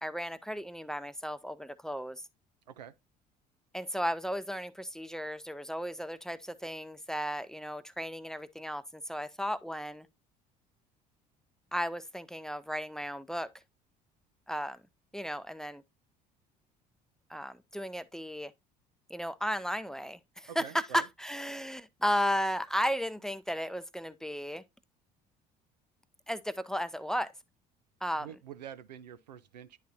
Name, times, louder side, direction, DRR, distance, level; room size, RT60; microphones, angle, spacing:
voice 1, 0.0-2.2 3.7-10.1 11.7-13.5 14.5-14.8 15.1-15.8 17.3-18.5 19.1-24.6 26.3-27.3 28.0-28.3, equal, ahead, 0.5 m, -34 dB
voice 2, 20.5-21.0 28.2-29.8, right 9 dB, 90° right, 0.5 m, -46 dB
10.0 x 4.2 x 2.4 m
hypercardioid pair, 60°, 21 cm